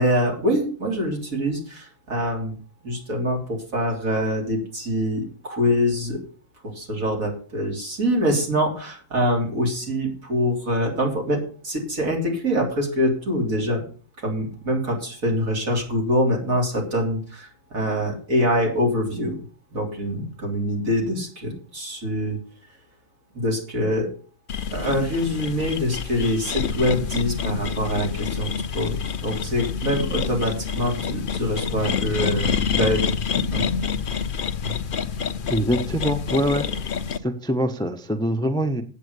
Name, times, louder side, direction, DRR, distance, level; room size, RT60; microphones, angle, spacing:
voice 1, 0.0-2.5 2.8-6.2 6.6-13.8 14.2-19.4 19.7-22.4 23.3-24.1 24.7-33.1 33.3-33.7 34.6-34.8, equal, 75° right, 0 dB, 3.9 m, -24 dB
sound 1, 24.5-37.2, left 6 dB, 50° left, 0.7 m, -27 dB
voice 2, 35.5-36.7 37.2-38.8, equal, 5° left, 8 dB, 0.8 m, -24 dB
8.4 x 8.4 x 8.1 m, 0.42 s
omnidirectional pair, 1.5 m